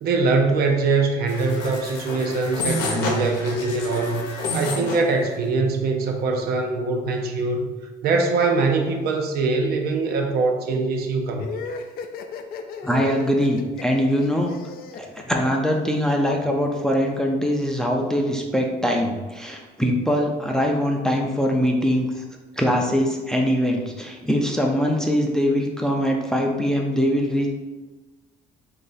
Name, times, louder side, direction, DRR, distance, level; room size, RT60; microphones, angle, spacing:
voice 1, 0.0-7.7 8.0-11.6, right 3 dB, 65° right, 3 dB, 0.5 m, -23 dB
sound 1, 1.3-5.1, left 2 dB, 85° left, 0.8 m, -29 dB
sound 2, 11.4-16.0, left 5 dB, 65° left, 0.4 m, -35 dB
voice 2, 12.8-14.5 15.0-22.2 22.6-27.5, equal, 5° left, 1 dB, 0.4 m, -22 dB
2.9 x 2.7 x 3.9 m, 1.2 s
cardioid pair, 110°, 17 cm